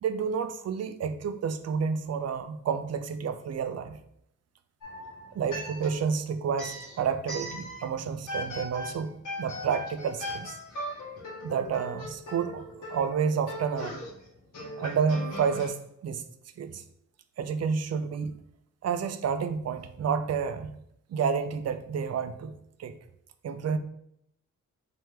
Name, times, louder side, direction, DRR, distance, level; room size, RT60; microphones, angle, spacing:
voice 1, 0.0-4.0 5.3-10.6 11.4-12.6 12.9-14.0 14.8-16.2 16.6-16.8 17.4-18.4 18.8-20.8 21.1-22.5 22.8-23.0 23.4-23.8, right 6 dB, 50° right, 10 dB, 0.4 m, -30 dB
sound 1, 4.8-6.1 6.5-7.9 8.3-15.7, left 1 dB, 65° left, 1.4 m, -39 dB
3.4 x 3.1 x 3.3 m, 0.75 s
cardioid pair, 60°, 33 cm